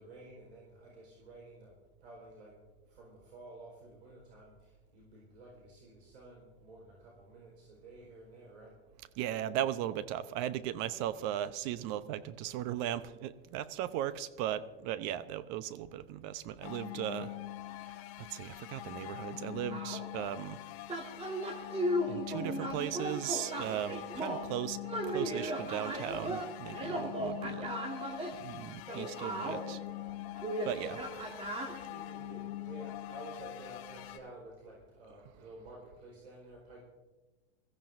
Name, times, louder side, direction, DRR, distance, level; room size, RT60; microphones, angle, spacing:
voice 1, 0.0-1.7 2.0-2.6 2.9-8.7 30.6-31.0 31.6-36.8, right 2 dB, 90° right, -3 dB, 4.4 m, -52 dB
voice 2, 9.2-17.4 17.9-20.6 22.1-24.8 25.1-27.7 28.4-29.8 30.6-31.0 31.4-31.7, right 11 dB, 50° right, 14 dB, 0.8 m, -37 dB
sound 1, 16.6-34.2, left 14 dB, 45° left, 1.1 m, -44 dB
sound 2, 19.7-20.0 20.9-24.5 24.8-28.4 28.9-31.8, right 1 dB, 20° right, 1.9 m, -36 dB
21.5 x 14.5 x 2.6 m, 1.2 s
hypercardioid pair, 110°, 31 cm